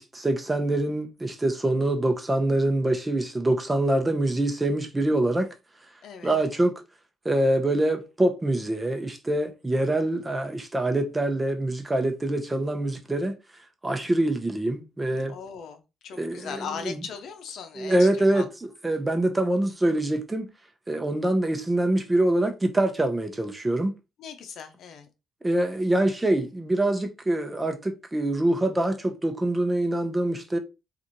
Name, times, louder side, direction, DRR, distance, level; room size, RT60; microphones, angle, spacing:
voice 1, 0.0-5.5 6.2-6.8 7.2-13.4 13.8-15.4 16.2-17.0 17.8-18.5 18.8-20.5 20.9-23.9 25.4-30.6, right 1 dB, 15° right, 0.8 m, -25 dB
voice 2, 15.3-18.5 24.2-25.1, left 6 dB, 70° left, 0.7 m, -39 dB
4.0 x 2.5 x 3.0 m
cardioid pair, 90°, 0 cm